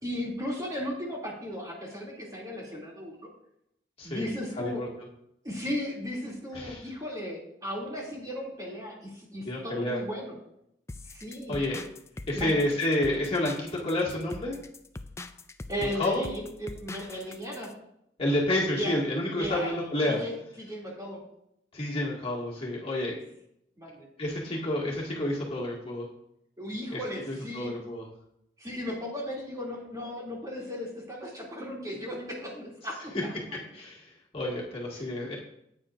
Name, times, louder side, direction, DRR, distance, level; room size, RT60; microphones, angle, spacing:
voice 1, 0.0-3.3 4.0-4.8 5.4-10.3 11.1-11.6 12.3-12.6 15.7-17.7 18.7-18.9 19.4-21.2 23.8-24.1 26.6-27.8 28.6-33.4 35.0-35.1, equal, 20° right, -3 dB, 2.6 m, -36 dB
voice 2, 4.6-4.9 6.5-6.9 9.4-10.0 11.5-11.9 12.3-14.6 16.0-16.3 18.2-20.2 21.7-23.2 24.2-26.1 26.9-27.0 27.3-28.1 33.7-35.4, left 1 dB, 35° left, -4 dB, 2.0 m, -29 dB
sound 1, 10.9-17.7, left 2 dB, 15° left, 0.4 m, -43 dB
14.5 x 9.2 x 2.5 m, 0.78 s
head